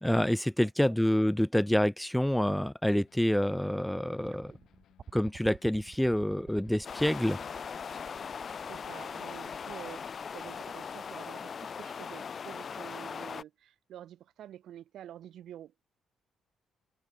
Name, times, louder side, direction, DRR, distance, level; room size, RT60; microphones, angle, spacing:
voice 1, 0.0-4.5 5.1-7.4, left 1 dB, 5° left, 0.4 m, -27 dB
sound 1, 2.9-10.0, left 11 dB, 70° left, 6.3 m, -65 dB
sound 2, 4.3-11.4 12.5-12.6, right 6 dB, 45° right, 3.0 m, -52 dB
sound 3, 6.8-13.4, left 6 dB, 45° left, 2.4 m, -40 dB
voice 2, 8.6-15.7, right 11 dB, 75° right, 5.3 m, -48 dB
cardioid pair, 90°, 0 cm